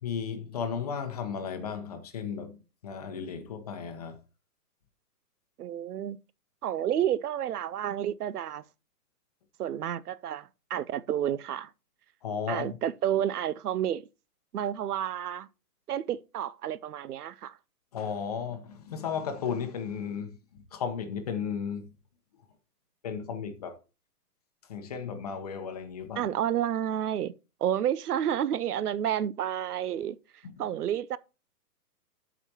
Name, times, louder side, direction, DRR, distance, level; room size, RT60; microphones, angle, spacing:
voice 1, 0.0-4.2 12.2-12.8 17.9-21.9 23.0-23.8 24.6-26.3 30.4-30.8, left 6 dB, 25° left, 0.9 m, -35 dB
voice 2, 5.6-6.2 6.6-8.6 9.6-11.7 12.5-14.0 14.5-15.5 15.9-17.6 26.2-27.4 27.6-30.2 30.6-31.2, right 10 dB, 75° right, 0.7 m, -30 dB
12.5 x 5.1 x 2.8 m
hypercardioid pair, 170°, 47 cm